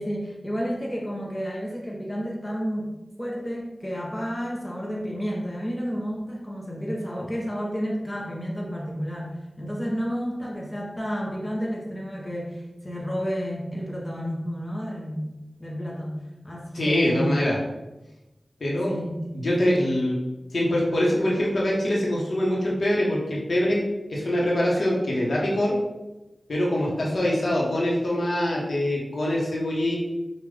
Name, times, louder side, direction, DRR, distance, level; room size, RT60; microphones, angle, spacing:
voice 1, 0.0-15.3 15.6-17.4 18.9-19.3 26.9-27.1, equal, 20° left, -3 dB, 1.0 m, -31 dB
voice 2, 16.7-17.5 18.6-18.9 19.3-20.2 20.5-23.8 24.1-25.7 26.5-30.0, left 1 dB, 75° left, -4 dB, 1.2 m, -24 dB
5.4 x 2.5 x 3.4 m, 1.0 s
wide cardioid pair, 55°, 0 cm